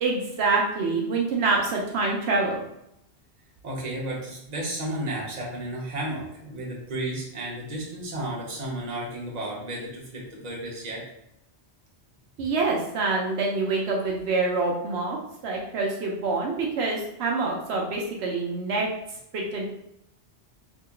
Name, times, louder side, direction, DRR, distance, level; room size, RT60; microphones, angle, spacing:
voice 1, 0.0-2.6 12.4-15.2 15.4-18.9 19.3-19.6, right 3 dB, 80° right, -1 dB, 0.9 m, -26 dB
voice 2, 3.6-11.0, right 1 dB, 40° right, -4 dB, 1.1 m, -33 dB
2.9 x 2.8 x 3.7 m, 0.80 s
omnidirectional pair, 1.1 m